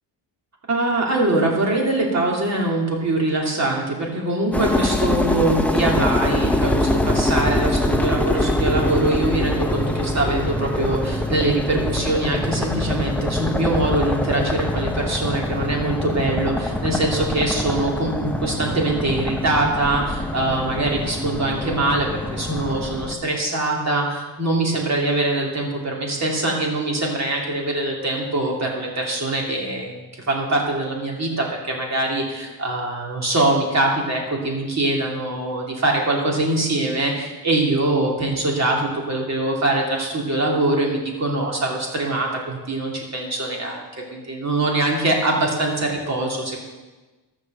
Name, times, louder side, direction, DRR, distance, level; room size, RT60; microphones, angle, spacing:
voice 1, 0.7-43.8 44.1-46.6, right 2 dB, 35° right, -1 dB, 2.9 m, -23 dB
sound 1, 4.5-23.1, left 1 dB, 5° left, 0.8 m, -24 dB
12.5 x 6.5 x 7.7 m, 1.2 s
cardioid pair, 135°, 44 cm